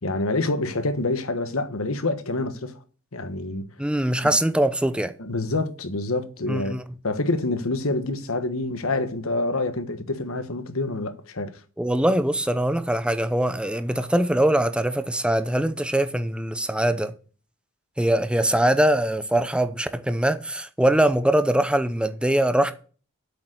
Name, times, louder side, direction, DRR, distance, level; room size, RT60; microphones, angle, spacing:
voice 1, 0.0-2.8 3.1-3.7 5.2-6.8 7.0-11.6, left 2 dB, 70° left, 1.2 m, -27 dB
voice 2, 3.8-5.1 6.5-6.8 11.8-17.1 18.0-22.7, right 1 dB, 5° right, 0.7 m, -22 dB
8.3 x 6.5 x 7.9 m
head